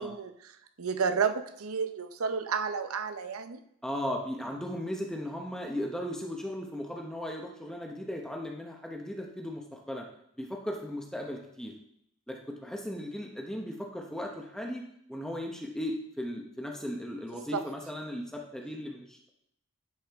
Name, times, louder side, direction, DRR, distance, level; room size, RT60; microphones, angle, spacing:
voice 1, 0.0-3.6 17.5-17.6, right 6 dB, 80° right, 9 dB, 0.7 m, -31 dB
voice 2, 3.8-10.1 10.4-11.7 12.3-14.8 15.1-19.3, equal, 5° left, 0 dB, 0.8 m, -37 dB
10.5 x 4.9 x 3.5 m, 0.73 s
head